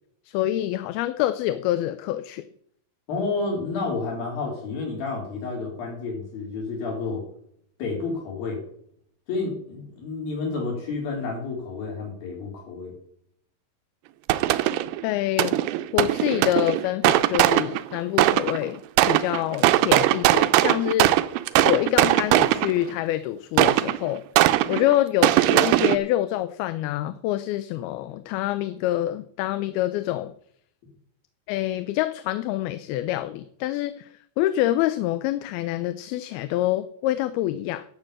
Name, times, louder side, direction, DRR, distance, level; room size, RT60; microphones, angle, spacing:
voice 1, 0.3-2.4 15.0-15.6 15.9-18.8 19.1-21.3 21.6-24.2 24.7-30.3 31.5-37.8, left 14 dB, 85° left, 12 dB, 2.5 m, -26 dB
voice 2, 3.1-7.2 7.8-8.6 9.3-12.9, left 3 dB, 70° left, -2 dB, 6.4 m, -30 dB
sound 1, 14.3-15.0 15.4-18.6 19.0-22.9 23.6-26.0, right 15 dB, 80° right, 2.2 m, -20 dB
12.0 x 7.4 x 7.4 m, 0.66 s
omnidirectional pair, 4.3 m